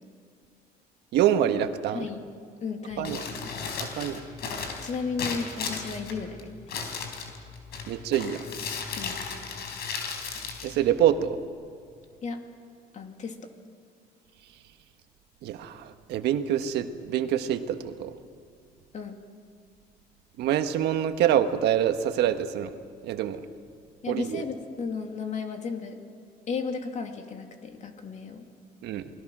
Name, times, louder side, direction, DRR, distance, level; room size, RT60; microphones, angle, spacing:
voice 1, 1.1-2.1 3.0-3.2 3.8-4.2 7.9-8.4 10.6-11.4 15.4-18.2 20.4-22.7 23.0-23.4 24.1-24.4 28.8-29.1, right 10 dB, 80° right, 8 dB, 1.5 m, -26 dB
voice 2, 1.9-2.3 2.6-3.4 4.8-6.4 9.0-9.2 12.2-12.4 12.9-13.5 18.9-19.2 24.0-26.0 26.5-28.4, left 5 dB, 45° left, 4 dB, 2.6 m, -34 dB
Crumpling crinkling, 2.9-11.5, left 5 dB, 75° left, 4.2 m, -36 dB
28.5 x 20.5 x 6.2 m, 2.2 s
cardioid pair, 110°, 17 cm